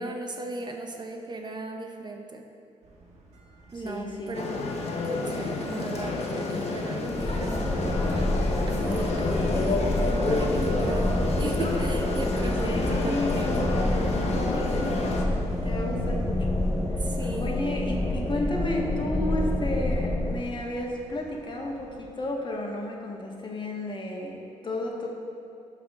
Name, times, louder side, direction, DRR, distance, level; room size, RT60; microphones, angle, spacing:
voice 1, 0.0-2.4 3.7-4.5 5.0-7.7 8.7-13.6 17.0-17.6, right 2 dB, 35° right, 3 dB, 0.8 m, -36 dB
sound 1, 2.8-22.2, right 2 dB, 60° right, 1.5 m, -45 dB
voice 2, 3.7-4.4 12.6-15.1 15.6-17.1 17.4-25.1, left 1 dB, 40° left, 0 dB, 1.5 m, -33 dB
sound 2, 4.3-15.2, left 3 dB, 55° left, 1.2 m, -29 dB
sound 3, 7.1-20.4, left 1 dB, 5° left, 0.7 m, -28 dB
11.5 x 4.9 x 3.7 m, 2.5 s
supercardioid pair, 70°, 13 cm